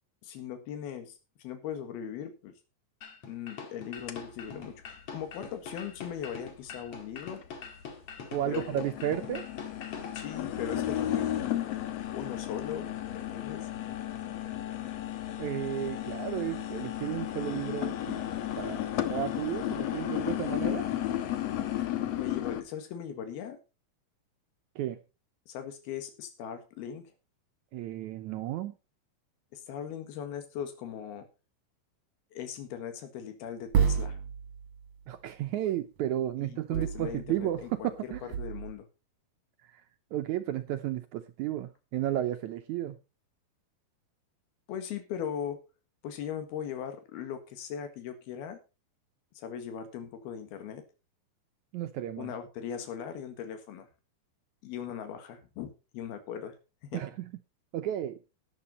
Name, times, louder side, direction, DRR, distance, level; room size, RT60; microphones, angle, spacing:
voice 1, 0.2-2.5 3.3-7.4 8.5-8.9 10.2-11.4 12.1-13.7 22.2-23.6 25.5-27.1 29.5-31.3 32.3-34.2 36.4-38.9 44.7-45.6 46.0-48.6 49.4-50.8 52.2-53.9 54.6-56.6 56.8-57.0, left 8 dB, 90° left, 3.6 m, -39 dB
sound 1, 3.0-10.4, left 5 dB, 45° left, 2.5 m, -44 dB
sound 2, 4.1-4.2 4.7-4.8 5.4-5.5 6.7-6.8 7.2-7.8 8.2-22.6, left 12 dB, 65° left, 1.7 m, -33 dB
voice 2, 8.3-9.5 15.4-18.3 18.5-18.8 19.1-20.9 24.7-25.0 27.7-28.7 35.1-38.3 39.7-39.8 40.1-43.0 51.7-52.3 56.9-57.3 57.7-58.2, right 12 dB, 85° right, 1.7 m, -33 dB
sound 3, 33.7-34.9 36.7-37.7 38.1-38.7, right 7 dB, 55° right, 2.1 m, -30 dB
13.0 x 10.5 x 4.1 m
omnidirectional pair, 4.3 m